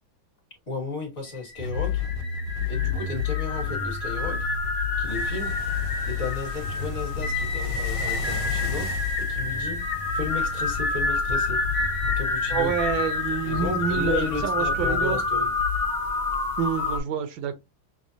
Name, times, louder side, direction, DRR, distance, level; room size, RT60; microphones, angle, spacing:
voice 1, 0.7-2.0 2.7-4.4 5.0-5.6 6.0-8.9 9.2-9.8 10.1-11.6 12.1-12.7 13.4-15.5, left 3 dB, 40° left, 1.4 m, -34 dB
sound 1, 1.3-17.0, left 3 dB, 25° left, 0.5 m, -29 dB
sound 2, 1.6-15.8, left 7 dB, 75° left, 0.9 m, -32 dB
sound 3, 5.1-10.8, equal, 40° right, 0.8 m, -40 dB
voice 2, 12.5-15.2 16.6-17.5, right 7 dB, 75° right, 1.3 m, -27 dB
6.0 x 2.0 x 2.6 m
omnidirectional pair, 2.2 m